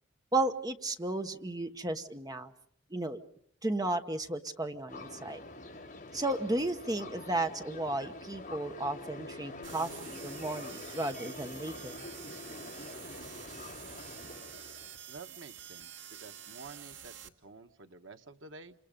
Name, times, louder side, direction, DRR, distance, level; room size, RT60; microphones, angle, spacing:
voice 1, 0.3-2.5 2.9-3.2 3.6-5.4 6.1-12.0, right 2 dB, 20° right, 8 dB, 1.1 m, -34 dB
sound 1, 4.9-15.0, left 2 dB, 40° left, 5.2 m, -46 dB
sound 2, 9.6-17.3, right 9 dB, 70° right, 1.3 m, -48 dB
voice 2, 15.1-15.9 16.2-18.7, right 3 dB, 90° right, 7 dB, 1.2 m, -50 dB
28.5 x 26.5 x 5.2 m, 0.62 s
head